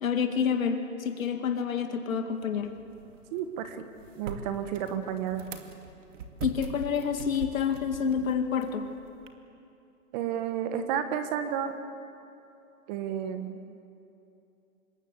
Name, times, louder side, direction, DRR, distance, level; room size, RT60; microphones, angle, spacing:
voice 1, 0.0-2.7 6.4-8.9, left 7 dB, 65° left, 5 dB, 2.2 m, -28 dB
sound 1, 2.3-9.3, right 4 dB, 55° right, 2.6 m, -43 dB
voice 2, 3.3-3.9 4.2-5.4 10.1-11.7 12.9-13.6, right 9 dB, 30° right, 8 dB, 1.5 m, -31 dB
26.5 x 22.0 x 8.1 m, 2.7 s
hypercardioid pair, 140°, 44 cm